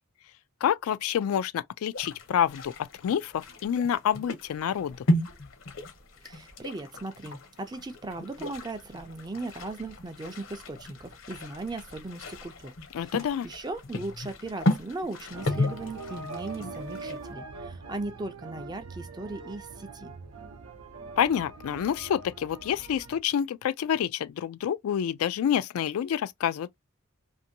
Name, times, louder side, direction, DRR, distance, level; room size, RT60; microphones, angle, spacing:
voice 1, 0.6-5.0 12.9-13.5 21.2-26.8, left 9 dB, 85° left, 0.3 m, -28 dB
sound 1, 1.9-17.3, left 1 dB, 65° left, 0.7 m, -34 dB
voice 2, 6.2-12.7 13.0-13.1 13.4-20.1, right 2 dB, 20° right, 0.4 m, -38 dB
sound 2, 15.3-23.2, right 3 dB, 85° right, 0.6 m, -42 dB
2.6 x 2.5 x 2.6 m
head